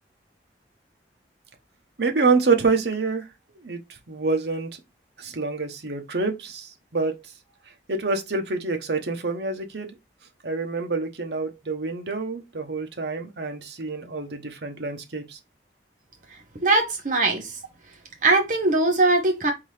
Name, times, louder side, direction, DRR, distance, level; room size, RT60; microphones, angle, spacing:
voice 1, 2.0-3.3 3.6-3.8 4.1-4.7 5.2-7.2 7.9-9.9 10.4-15.4, right 4 dB, 65° right, 0.9 m, -26 dB
voice 2, 16.6-17.4 18.2-19.5, right 2 dB, 45° right, 1.2 m, -20 dB
3.8 x 2.8 x 4.8 m
head